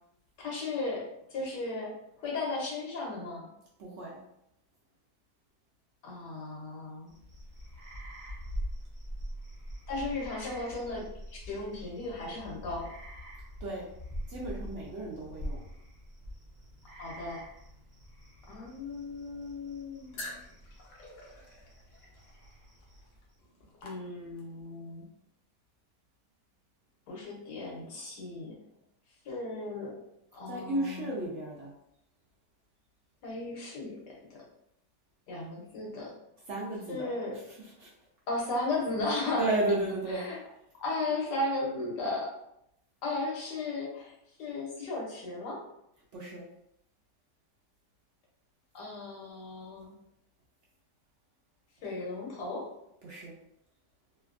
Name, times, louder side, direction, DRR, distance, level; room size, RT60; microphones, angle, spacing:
voice 1, 0.4-3.5 6.0-7.2 9.9-12.9 17.0-17.4 18.5-20.4 23.8-25.1 27.1-28.6 29.2-30.0 30.3-31.1 33.2-34.4 35.3-36.1 36.9-37.4 38.3-39.5 40.1-40.4 40.8-42.3 43.0-45.6 48.7-49.9 51.8-52.7, left 2 dB, 85° left, -3 dB, 1.5 m, -35 dB
voice 2, 3.8-4.2 13.6-13.9 14.3-15.6 30.5-31.7 36.5-37.1 37.8-37.9 39.4-40.2 46.1-46.4 53.0-53.4, right 1 dB, 70° right, -4 dB, 0.7 m, -33 dB
sound 1, 7.1-23.3, equal, 30° right, 0.3 m, -44 dB
sound 2, 20.1-24.6, left 2 dB, 65° left, 0.8 m, -48 dB
3.2 x 2.2 x 2.4 m, 0.78 s
omnidirectional pair, 1.8 m